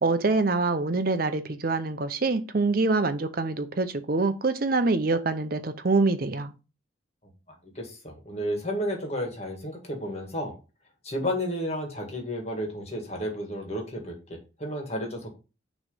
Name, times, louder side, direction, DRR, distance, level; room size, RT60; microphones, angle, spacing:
voice 1, 0.0-6.5, right 3 dB, 50° right, 0.6 m, -25 dB
voice 2, 7.6-10.5 11.0-15.3, equal, 35° left, 1.9 m, -32 dB
6.3 x 3.1 x 5.5 m
head